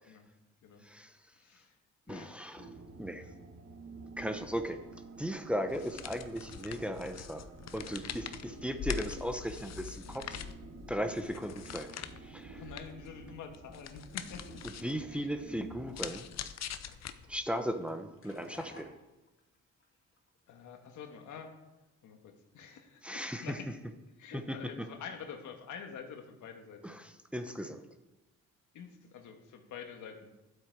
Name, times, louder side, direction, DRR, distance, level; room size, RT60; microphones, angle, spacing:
voice 1, 0.8-1.2 2.1-2.7 3.0-3.3 4.2-4.8 5.2-7.5 7.7-10.4 10.9-12.6 14.8-16.3 17.3-18.9 23.0-23.6 24.3-24.9 26.8-27.8, equal, 5° right, 6 dB, 1.0 m, -37 dB
voice 2, 1.3-1.8 2.1-2.3 8.5-8.6 12.5-14.6 15.1-15.3 20.5-21.6 22.0-23.7 24.2-27.0 28.7-30.3, left 7 dB, 80° left, 4 dB, 1.6 m, -47 dB
sound 1, 2.6-16.1, right 4 dB, 55° right, 1.5 m, -51 dB
sound 2, 5.7-17.6, left 9 dB, 60° left, 0.8 m, -44 dB
sound 3, 15.6-20.4 20.7-21.4, left 3 dB, 45° left, 2.6 m, -58 dB
12.5 x 8.1 x 4.7 m, 1.0 s
cardioid pair, 90°, 30 cm